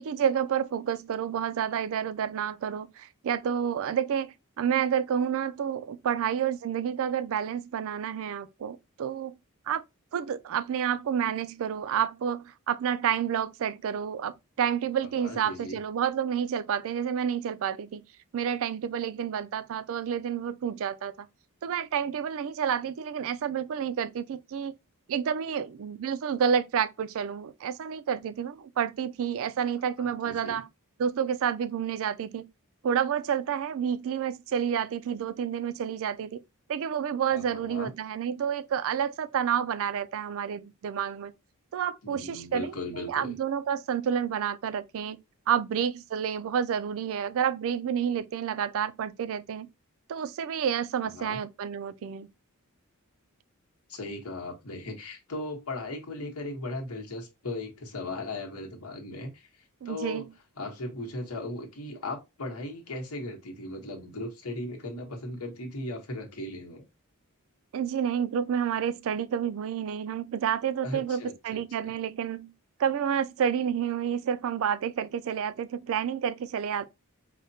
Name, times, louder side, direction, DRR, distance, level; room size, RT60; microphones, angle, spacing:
voice 1, 0.0-9.4 9.7-9.8 10.1-18.0 18.3-21.3 21.6-24.7 25.1-30.7 31.0-32.5 32.8-36.4 36.7-41.3 41.7-45.2 45.5-49.7 50.1-52.3 59.8-60.3 67.7-72.5 72.8-76.9, right 8 dB, 65° right, 0.3 m, -29 dB
voice 2, 15.0-15.8 30.2-30.6 37.3-37.9 42.0-43.3 51.0-51.4 53.9-60.2 60.6-66.8 70.8-71.9, left 2 dB, 75° left, 1.1 m, -37 dB
4.9 x 2.1 x 2.7 m
head